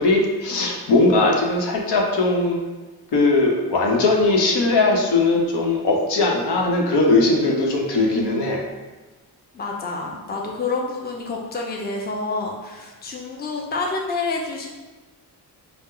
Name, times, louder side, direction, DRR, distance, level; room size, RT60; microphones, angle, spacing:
voice 1, 0.0-2.6 3.1-8.6, left 2 dB, 85° left, 0 dB, 0.8 m, -19 dB
voice 2, 9.5-14.7, left 3 dB, 25° left, -1 dB, 0.5 m, -28 dB
5.5 x 2.1 x 3.7 m, 1.2 s
wide cardioid pair, 155°, 40 cm